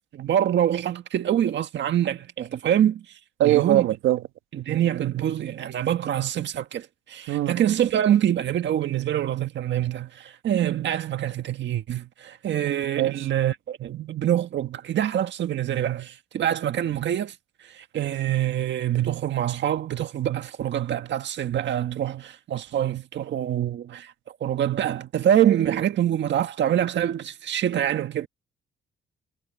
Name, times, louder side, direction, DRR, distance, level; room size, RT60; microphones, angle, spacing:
voice 1, 0.1-3.0 3.4-3.8 4.5-17.3 17.7-24.1 24.4-28.3, right 10 dB, 65° right, 1.7 m, -25 dB
voice 2, 3.4-4.2 7.3-7.6 13.0-13.3, right 14 dB, 90° right, 1.5 m, -21 dB
cardioid pair, 90°, 20 cm